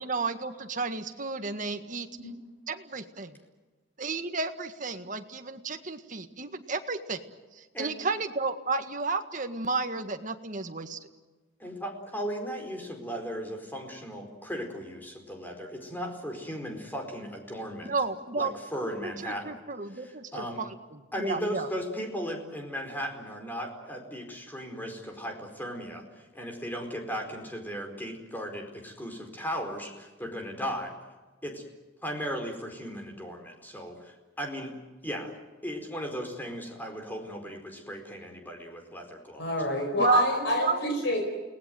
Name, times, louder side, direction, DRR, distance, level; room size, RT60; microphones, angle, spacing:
voice 1, 0.0-2.1 2.7-3.4 4.0-7.2 7.6-11.0 17.8-21.7 40.0-40.8, right 3 dB, 40° right, 7 dB, 1.8 m, -32 dB
voice 2, 11.6-17.9 18.4-20.6 21.1-30.9 31.4-31.6 32.0-34.7 35.0-35.3 35.6-39.5, equal, 10° left, 3 dB, 4.6 m, -36 dB
voice 3, 39.4-41.3, left 1 dB, 65° left, 2 dB, 5.1 m, -28 dB
30.0 x 19.5 x 7.8 m, 1.3 s
head